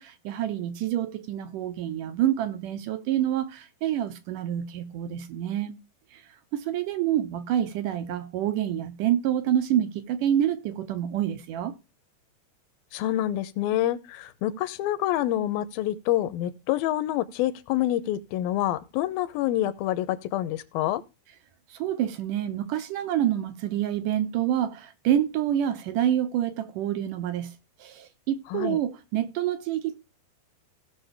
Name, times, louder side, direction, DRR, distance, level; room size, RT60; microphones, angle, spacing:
voice 1, 0.0-5.8 6.1-6.2 6.5-11.7 21.7-27.5 27.8-30.0, right 11 dB, 75° right, 2.2 m, -27 dB
voice 2, 12.9-21.0 28.5-28.8, left 13 dB, 85° left, 2.5 m, -27 dB
17.5 x 6.1 x 3.4 m
omnidirectional pair, 4.2 m